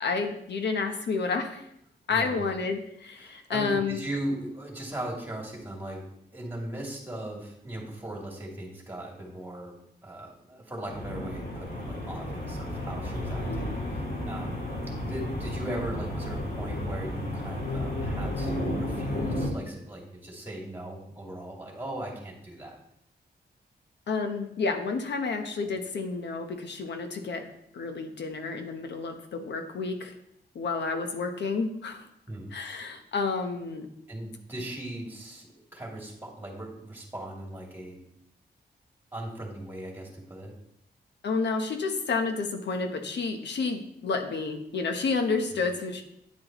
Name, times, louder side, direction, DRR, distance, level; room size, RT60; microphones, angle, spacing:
voice 1, 0.0-1.7 2.1-4.0 13.5-13.8 24.1-27.4 27.7-30.1 30.5-32.1 32.5-33.9 41.2-46.0, left 4 dB, 80° left, 5 dB, 1.0 m, -30 dB
voice 2, 2.1-2.5 3.2-9.7 10.0-14.6 15.0-22.8 25.6-25.7 32.3-32.5 34.1-38.0 39.1-40.5 45.5-45.6, right 1 dB, 10° right, -2 dB, 2.6 m, -38 dB
sound 1, 10.9-19.5, left 1 dB, 60° left, 2.5 m, -32 dB
9.6 x 8.8 x 3.1 m, 0.75 s
wide cardioid pair, 110°, 18 cm